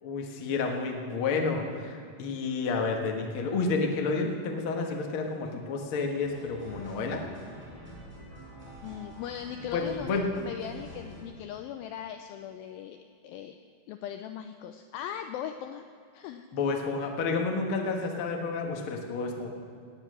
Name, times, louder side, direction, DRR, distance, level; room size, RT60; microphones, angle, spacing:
voice 1, 0.0-7.2 9.7-10.3 16.5-19.5, left 4 dB, 65° left, 2 dB, 1.3 m, -30 dB
sound 1, 6.2-11.2, equal, 15° left, 3.0 m, -46 dB
voice 2, 8.8-13.6 13.9-15.9 16.1-16.5, left 10 dB, 85° left, 8 dB, 2.1 m, -39 dB
17.0 x 9.0 x 6.2 m, 2.5 s
omnidirectional pair, 4.7 m